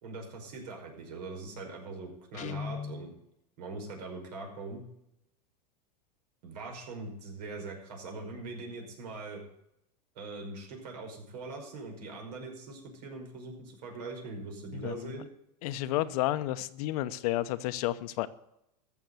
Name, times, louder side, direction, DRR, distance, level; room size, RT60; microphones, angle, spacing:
voice 1, 0.0-3.1 3.6-4.8 6.4-9.4 10.2-15.3, right 3 dB, 70° right, 1 dB, 5.3 m, -42 dB
Guitar, 2.3-3.1, left 6 dB, 35° left, 1.2 m, -38 dB
voice 2, 14.7-15.2 15.6-18.3, left 15 dB, 60° left, 12 dB, 0.9 m, -31 dB
14.5 x 7.0 x 7.8 m, 0.82 s
hypercardioid pair, 120°, 21 cm